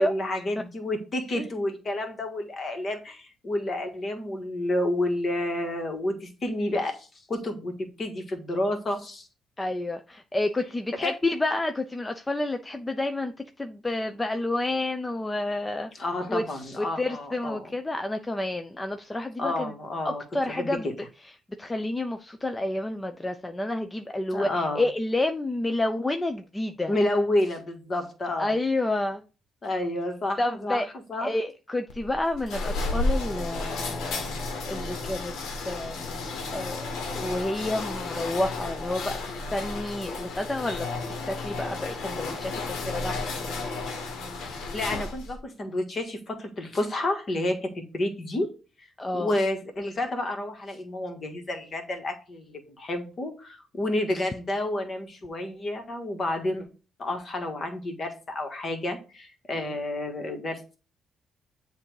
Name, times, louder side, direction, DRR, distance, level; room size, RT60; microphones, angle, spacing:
voice 1, 0.0-9.3 11.0-11.1 16.0-17.7 19.4-21.0 24.3-24.8 26.9-28.6 29.6-30.8 31.1-31.3 44.5-48.5 48.8-48.9 49.1-56.7 57.0-60.8, left 1 dB, 40° left, 1.6 m, -30 dB
voice 2, 9.6-13.3 13.6-15.9 16.3-16.4 16.8-19.7 20.0-20.9 21.6-26.9 28.4-29.2 30.4-30.9 31.2-34.2 34.7-35.3 35.7-36.3 36.5-39.2 39.5-40.9 41.3-43.6 49.0-49.3 59.5-59.7, left 2 dB, 15° left, 0.5 m, -29 dB
sound 1, 31.9-45.4, left 3 dB, 80° left, 1.2 m, -32 dB
7.5 x 2.6 x 4.8 m
cardioid pair, 90°, 0 cm